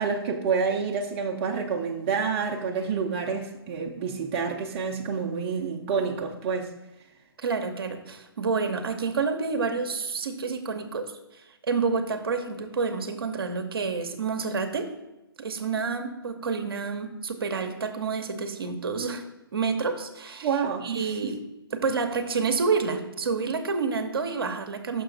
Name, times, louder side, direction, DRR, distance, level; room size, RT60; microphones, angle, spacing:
voice 1, 0.0-6.7 20.4-21.3, right 5 dB, 30° right, 1 dB, 0.8 m, -28 dB
voice 2, 7.4-11.1 11.6-14.9 15.4-19.2 19.5-20.5 20.8-21.4 21.7-25.0, right 4 dB, 70° right, 5 dB, 0.9 m, -28 dB
6.1 x 5.6 x 3.9 m, 0.99 s
figure-of-eight pair, 140°, 13 cm